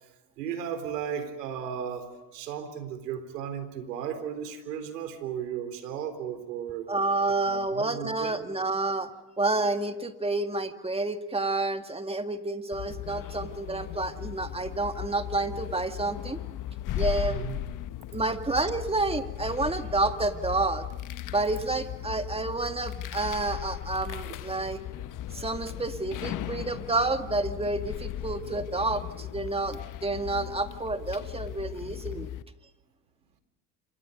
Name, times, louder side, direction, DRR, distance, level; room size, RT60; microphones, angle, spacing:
voice 1, 0.4-6.9 7.5-8.4 17.3-17.6 24.3-24.4, right 8 dB, 85° right, 9 dB, 4.0 m, -35 dB
voice 2, 6.9-9.1 9.4-16.4 17.0-17.4 18.1-20.8 21.3-24.8 25.3-32.3, right 2 dB, 10° right, 7 dB, 2.0 m, -29 dB
sound 1, 12.7-32.4, left 12 dB, 40° left, 1.1 m, -37 dB
28.0 x 25.5 x 5.3 m, 1.1 s
hypercardioid pair, 90°, 47 cm